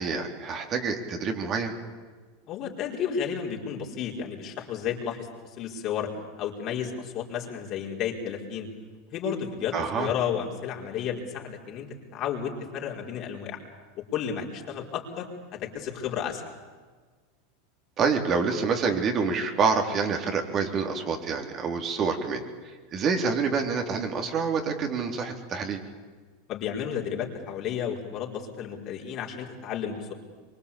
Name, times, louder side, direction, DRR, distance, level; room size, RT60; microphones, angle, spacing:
voice 1, 0.0-1.7 9.7-10.1 18.0-22.4 22.9-25.8, right 5 dB, 40° right, 4 dB, 3.8 m, -27 dB
voice 2, 2.5-5.3 5.6-6.1 6.4-8.7 9.1-13.6 14.1-15.3 15.6-16.4 26.5-30.1, left 8 dB, 45° left, 0 dB, 4.8 m, -32 dB
24.0 x 23.5 x 8.6 m, 1.4 s
hypercardioid pair, 90°, 0 cm